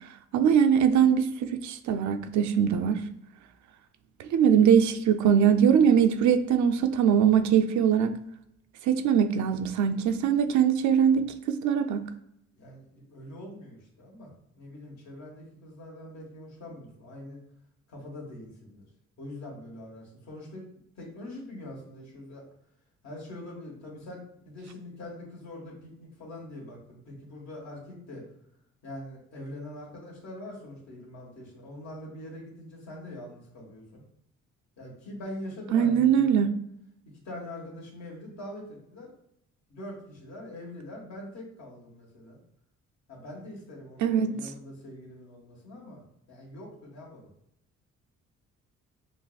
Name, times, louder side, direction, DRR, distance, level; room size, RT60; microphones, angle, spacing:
voice 1, 0.3-3.0 4.2-8.1 8.8-12.0 35.7-36.5 44.0-44.3, right 8 dB, 70° right, 8 dB, 0.5 m, -22 dB
voice 2, 12.5-14.3 14.6-17.4 17.9-18.9 19.2-20.7 21.0-22.4 23.0-28.3 28.8-34.0 34.8-36.5 37.2-39.1 39.7-42.4 43.1-46.0 46.3-47.3, left 1 dB, 65° left, -2 dB, 1.5 m, -43 dB
5.7 x 2.0 x 2.3 m, 0.76 s
cardioid pair, 90°, 30 cm